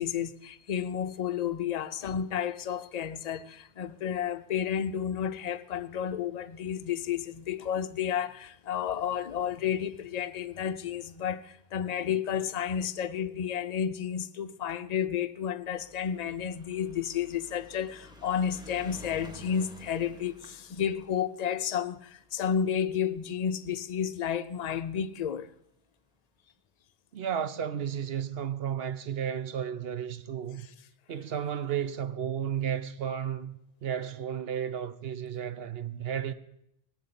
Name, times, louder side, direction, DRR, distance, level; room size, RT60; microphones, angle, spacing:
voice 1, 0.0-25.5, left 8 dB, 45° left, 0.6 m, -31 dB
sound 1, 15.7-24.2 25.0-25.1 25.3-25.4 25.6-25.7, left 1 dB, 5° right, 1.8 m, -51 dB
voice 2, 27.1-30.7 31.1-36.3, right 8 dB, 65° right, 1.0 m, -33 dB
17.5 x 7.0 x 9.7 m
omnidirectional pair, 1.2 m